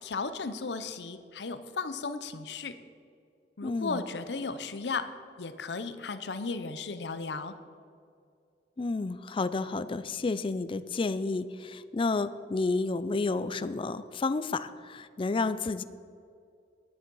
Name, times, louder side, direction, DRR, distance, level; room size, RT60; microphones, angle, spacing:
voice 1, 0.0-2.7 3.6-5.1 5.4-7.5, left 4 dB, 75° left, 11 dB, 0.7 m, -35 dB
voice 2, 3.6-4.0 8.8-15.8, left 3 dB, 30° left, 13 dB, 0.4 m, -31 dB
10.0 x 9.7 x 5.4 m, 2.3 s
head